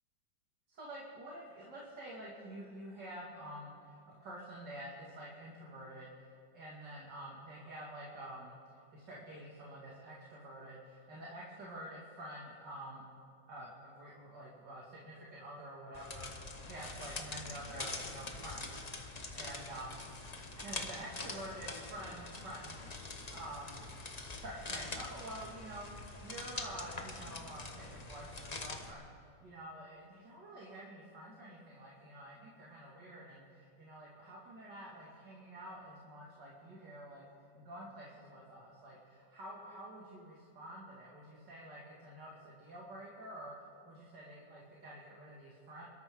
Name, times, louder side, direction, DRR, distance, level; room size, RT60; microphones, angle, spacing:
voice 1, 0.7-8.5 8.9-13.0 13.5-20.0 20.6-22.9 23.3-23.8 24.3-25.9 26.2-29.1 29.4-37.2 37.5-43.5 43.9-45.8, right 1 dB, 65° right, -5 dB, 2.8 m, -48 dB
sound 1, 15.9-28.9, left 3 dB, 25° left, 1.0 m, -44 dB
27.0 x 13.0 x 3.8 m, 2.5 s
omnidirectional pair, 2.0 m